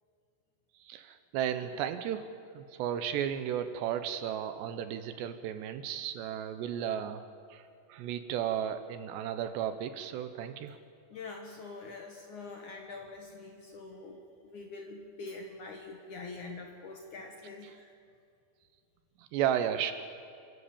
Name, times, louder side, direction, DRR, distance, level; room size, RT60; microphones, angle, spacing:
voice 1, 0.8-7.2 7.5-7.6 7.9-10.8 17.6-17.8 19.2-19.9, right 9 dB, 75° right, 10 dB, 2.9 m, -34 dB
voice 2, 11.1-18.0, left 3 dB, 60° left, 2 dB, 2.1 m, -45 dB
28.0 x 13.0 x 8.7 m, 2.4 s
omnidirectional pair, 5.3 m